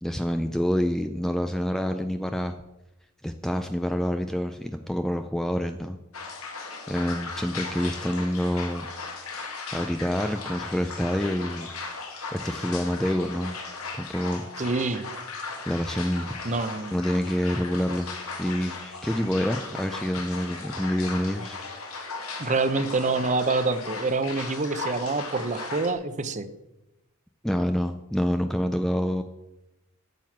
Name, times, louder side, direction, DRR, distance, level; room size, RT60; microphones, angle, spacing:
voice 1, 0.0-2.5 3.2-6.0 6.9-8.9 9.7-11.7 12.3-13.6 14.0-14.5 15.7-16.5 16.9-18.1 18.4-21.6 27.4-29.2, equal, ahead, 7 dB, 0.4 m, -27 dB
sound 1, 6.1-25.9, left 4 dB, 70° left, 1.9 m, -37 dB
voice 2, 14.6-15.1 16.4-17.0 22.4-26.5, right 3 dB, 35° right, 11 dB, 0.7 m, -26 dB
9.2 x 7.6 x 7.3 m, 0.96 s
head